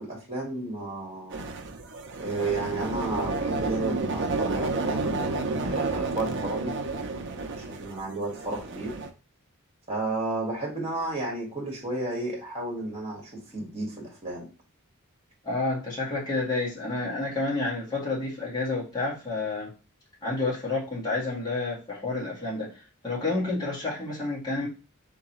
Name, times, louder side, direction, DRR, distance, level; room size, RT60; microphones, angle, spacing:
voice 1, 0.0-1.5 2.2-6.8 7.2-9.0 9.9-14.5, right 2 dB, 30° right, 1.9 m, -32 dB
sound 1, 1.3-9.1, right 3 dB, 60° right, 0.7 m, -31 dB
voice 2, 15.4-19.7 20.2-24.7, left 3 dB, 20° left, 2.0 m, -30 dB
3.8 x 3.7 x 3.0 m
head